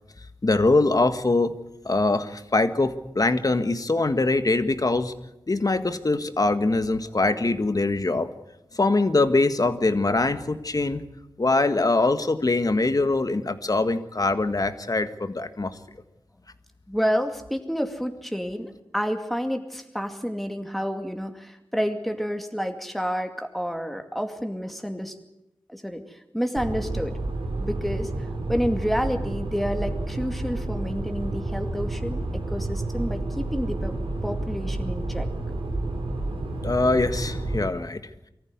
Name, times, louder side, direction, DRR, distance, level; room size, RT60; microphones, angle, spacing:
voice 1, 0.4-1.5 1.8-5.1 5.5-8.3 8.7-11.0 11.4-15.7 36.6-38.0, left 2 dB, 45° left, 10 dB, 1.7 m, -23 dB
voice 2, 16.9-25.2 25.7-26.0 26.3-27.2 27.6-28.1 28.5-34.0 34.2-35.3, equal, ahead, 5 dB, 2.3 m, -29 dB
sound 1, 26.5-37.7, right 2 dB, 90° right, 3.6 m, -30 dB
24.0 x 14.5 x 9.7 m, 0.88 s
wide cardioid pair, 60°, 9 cm